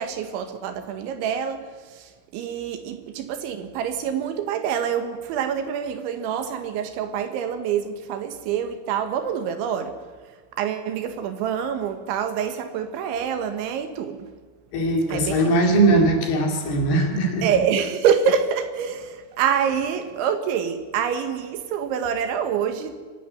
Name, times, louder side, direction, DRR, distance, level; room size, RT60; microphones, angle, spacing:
voice 1, 0.0-14.3 15.1-15.6 17.4-23.0, right 7 dB, 80° right, 3.7 m, -26 dB
voice 2, 14.7-17.5, right 2 dB, 60° left, 4.1 m, -20 dB
25.0 x 11.5 x 9.2 m
omnidirectional pair, 5.5 m